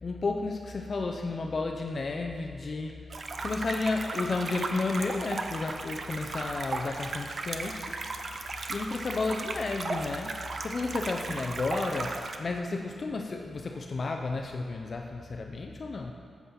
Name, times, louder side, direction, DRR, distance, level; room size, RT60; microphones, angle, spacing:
voice 1, 0.0-3.0 3.4-8.0 8.3-16.1, left 3 dB, 50° left, 3 dB, 0.5 m, -32 dB
sound 1, 3.1-12.4, right 3 dB, 55° right, 0.7 m, -36 dB
8.5 x 7.3 x 5.6 m, 2.2 s
cardioid pair, 85°, 0 cm